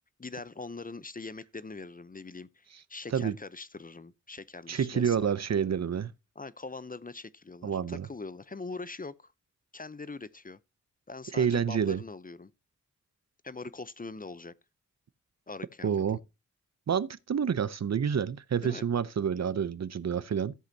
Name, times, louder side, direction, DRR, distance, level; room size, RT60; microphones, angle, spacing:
voice 1, 0.2-5.3 6.4-9.3 9.7-10.6 11.1-12.5 13.4-14.5 15.5-15.9 18.6-18.8, left 3 dB, 30° left, 0.6 m, -42 dB
voice 2, 4.7-6.1 7.6-8.1 11.3-12.0 15.8-16.2 16.9-20.5, right 7 dB, 60° right, 0.7 m, -28 dB
14.0 x 7.9 x 2.7 m
cardioid pair, 55°, 30 cm